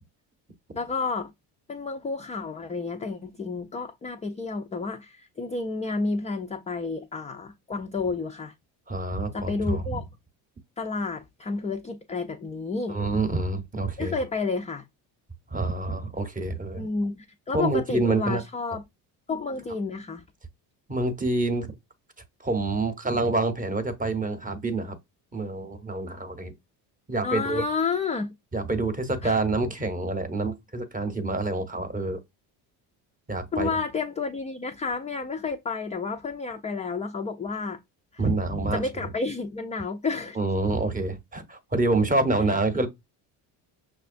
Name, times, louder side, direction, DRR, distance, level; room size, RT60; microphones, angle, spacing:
voice 1, 0.7-1.3 1.7-8.5 9.3-10.0 10.8-13.0 14.0-14.8 16.7-18.8 19.3-20.2 27.2-28.3 29.2-29.4 33.5-37.8 38.1-38.3 38.7-40.4, left 4 dB, 15° left, 0.3 m, -30 dB
voice 2, 8.9-10.0 12.9-14.1 15.5-16.9 17.5-18.4 20.9-21.7 22.4-25.0 25.3-26.5 27.1-27.6 28.5-32.2 33.3-33.7 38.2-38.8 40.4-42.9, right 2 dB, 20° right, 0.8 m, -27 dB
5.7 x 2.2 x 2.5 m
supercardioid pair, 80°, 47 cm